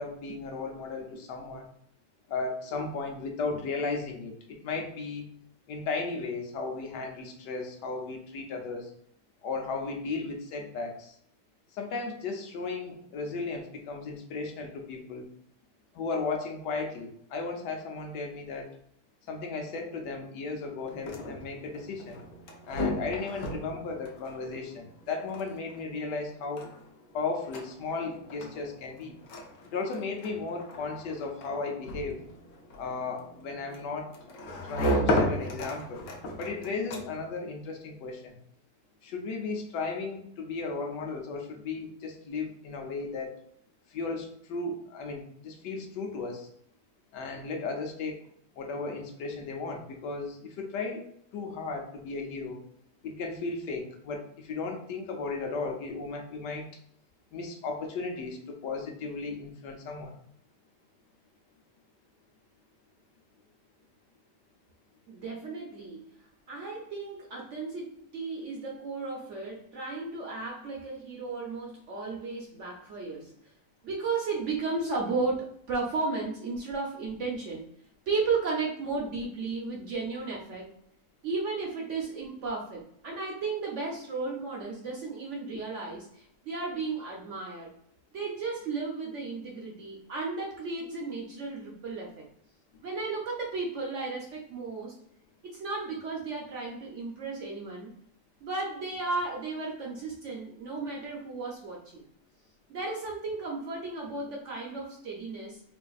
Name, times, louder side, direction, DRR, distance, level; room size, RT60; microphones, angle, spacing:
voice 1, 0.0-1.7 2.3-5.3 5.7-8.9 9.4-11.2 11.7-15.3 15.9-18.7 19.3-22.2 22.7-26.7 27.1-29.2 29.7-32.2 32.7-34.1 34.6-36.1 36.4-38.4 39.0-43.4 43.9-46.5 47.1-48.2 48.5-51.0 51.3-52.6 53.0-56.7 57.3-60.1, left 4 dB, 85° left, 2 dB, 1.3 m, -35 dB
sound 1, 20.8-37.4, equal, 65° left, 0.9 m, -35 dB
voice 2, 65.1-73.3 73.8-77.7 78.1-80.7 81.2-87.7 88.1-92.3 92.8-94.9 95.4-97.9 98.4-102.0 102.7-105.6, right 3 dB, 60° right, -2 dB, 0.8 m, -34 dB
4.1 x 2.6 x 2.3 m, 0.67 s
omnidirectional pair, 1.8 m